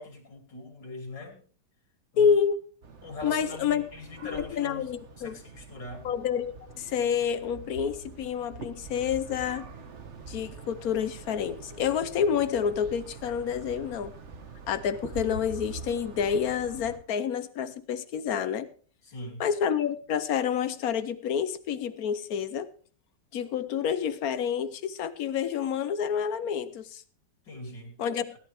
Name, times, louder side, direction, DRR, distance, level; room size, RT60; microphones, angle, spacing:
voice 1, 0.0-1.4 2.1-2.3 3.0-4.9 5.2-6.1 19.0-19.4 27.5-28.0, left 2 dB, 90° left, 3.7 m, -41 dB
voice 2, 2.2-2.6 3.2-3.9 4.3-5.4 6.0-9.7 10.3-14.2 14.7-18.7 19.4-22.7 23.3-27.0 28.0-28.4, left 7 dB, 65° left, 1.2 m, -28 dB
sound 1, 2.8-17.0, right 4 dB, 45° right, 1.4 m, -45 dB
17.0 x 11.0 x 3.4 m
omnidirectional pair, 1.9 m